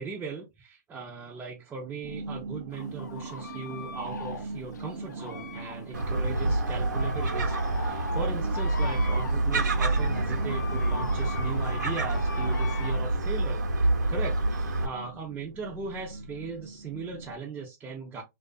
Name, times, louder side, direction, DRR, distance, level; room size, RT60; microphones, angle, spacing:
voice 1, 0.0-13.6 14.1-18.2, right 5 dB, 15° right, 0.6 m, -38 dB
sound 1, 2.0-17.3, right 3 dB, 60° right, 0.5 m, -41 dB
sound 2, 2.7-13.0, left 5 dB, 80° left, 0.5 m, -41 dB
Gull seagull, 5.9-14.9, right 2 dB, 85° right, 0.9 m, -27 dB
2.4 x 2.4 x 2.2 m
hypercardioid pair, 115°, 10 cm